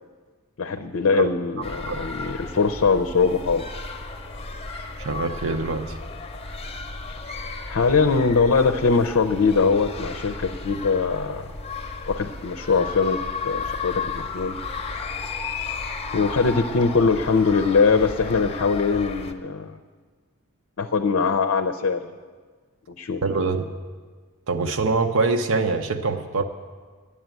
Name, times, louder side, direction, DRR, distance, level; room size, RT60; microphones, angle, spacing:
voice 1, 0.6-3.6 7.7-11.5 12.1-14.6 16.1-19.7 20.8-22.0 23.0-23.2, left 4 dB, 60° left, 8 dB, 0.6 m, -22 dB
sound 1, 1.6-19.3, left 4 dB, 25° left, 0.7 m, -34 dB
voice 2, 5.0-6.0 23.2-23.7 24.5-26.4, right 3 dB, 60° right, 5 dB, 0.7 m, -24 dB
10.0 x 8.1 x 9.0 m, 1.5 s
head